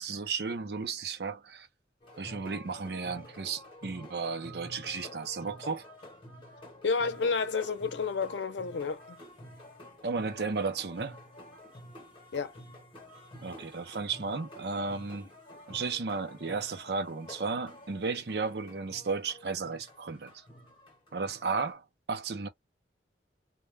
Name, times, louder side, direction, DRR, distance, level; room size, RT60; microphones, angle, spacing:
voice 1, 0.0-1.7 2.2-5.8 10.0-11.2 13.4-15.3 15.7-20.4 21.1-22.5, right 4 dB, 65° right, 0.6 m, -34 dB
sound 1, 2.0-21.7, left 1 dB, 30° left, 1.0 m, -50 dB
voice 2, 6.8-9.2 12.3-12.5, left 5 dB, 90° left, 0.6 m, -30 dB
2.2 x 2.1 x 3.2 m
head